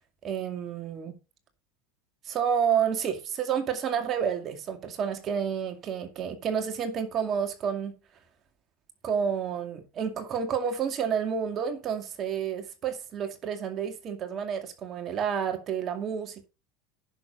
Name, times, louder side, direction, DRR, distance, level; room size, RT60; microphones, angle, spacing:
voice 1, 0.2-1.1 2.2-7.9 9.0-16.5, right 7 dB, 40° right, 2.2 m, -30 dB
10.5 x 6.5 x 5.4 m
supercardioid pair, 110°, 0 cm